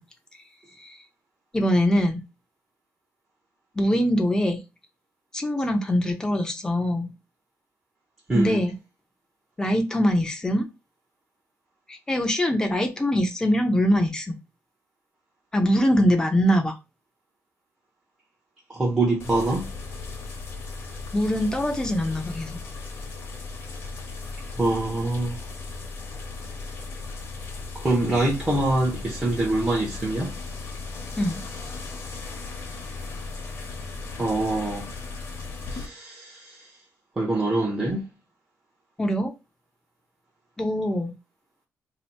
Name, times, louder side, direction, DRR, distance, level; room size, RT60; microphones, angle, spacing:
voice 1, 1.5-2.2 3.7-4.6 5.3-7.1 8.3-8.7 9.6-10.7 11.9-14.4 15.5-16.7 21.1-22.6 31.2-31.4 39.0-39.3 40.6-41.1, equal, 15° left, 0.7 m, -23 dB
voice 2, 8.3-8.6 18.7-19.7 24.6-25.4 27.7-30.3 34.2-34.9 35.7-36.6 37.2-38.1, right 2 dB, 15° right, 0.9 m, -25 dB
sound 1, 19.2-35.9, left 3 dB, 50° left, 1.0 m, -36 dB
2.8 x 2.7 x 4.2 m
wide cardioid pair, 165°, 5 cm